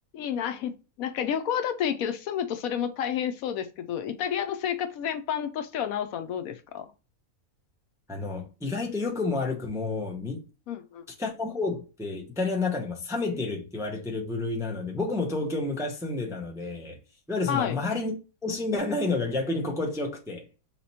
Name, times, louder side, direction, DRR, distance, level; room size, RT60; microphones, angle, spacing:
voice 1, 0.1-0.7 1.0-6.9 10.7-11.0 17.5-17.8, left 9 dB, 75° left, 1.0 m, -30 dB
voice 2, 8.1-10.4 11.2-17.0 17.3-18.1 18.4-20.5, left 3 dB, 5° right, 0.5 m, -30 dB
4.1 x 3.0 x 4.0 m
omnidirectional pair, 1.5 m